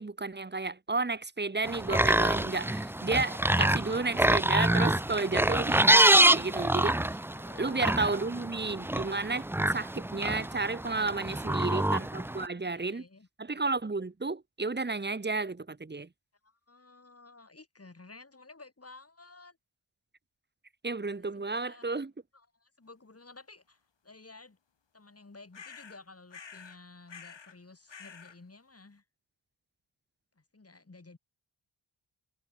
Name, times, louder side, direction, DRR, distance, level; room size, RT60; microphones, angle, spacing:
voice 1, 0.0-7.0 7.6-13.0 13.4-16.1 20.8-22.1, right 3 dB, 20° right, 1.3 m, -32 dB
sound 1, 1.6-12.5, right 1 dB, 5° right, 0.4 m, -26 dB
voice 2, 7.3-8.3 11.4-12.0 12.6-13.3 16.4-19.6 21.2-21.9 22.3-24.6 24.9-29.0 30.4-31.2, left 3 dB, 30° left, 6.5 m, -54 dB
sound 2, 25.5-26.0 26.3-26.8 27.1-27.6 27.9-28.4, left 6 dB, 60° left, 4.6 m, -48 dB
wide cardioid pair, 125°, 49 cm